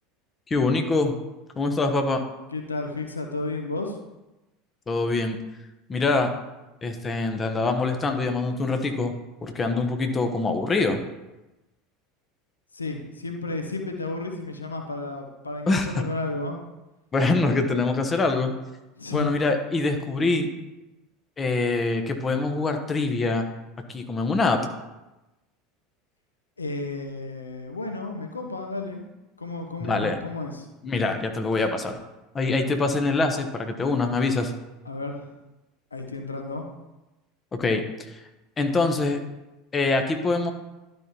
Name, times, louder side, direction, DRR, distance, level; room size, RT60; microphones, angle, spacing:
voice 1, 0.5-1.1 1.5-2.2 4.9-5.4 5.9-6.3 6.8-9.1 9.4-11.0 15.7-15.9 17.1-18.5 19.1-20.5 21.4-23.5 23.9-24.6 29.8-30.2 30.8-32.0 32.3-34.5 37.5-38.2 38.6-39.2 39.7-40.5, left 3 dB, 25° left, 5 dB, 1.1 m, -24 dB
voice 2, 2.5-4.0 12.7-16.6 19.0-19.3 26.6-29.0 29.4-30.7 34.8-35.3 35.9-36.7, left 2 dB, 90° left, 4 dB, 0.8 m, -32 dB
12.0 x 5.3 x 3.0 m, 1.0 s
figure-of-eight pair, 75°, 0 cm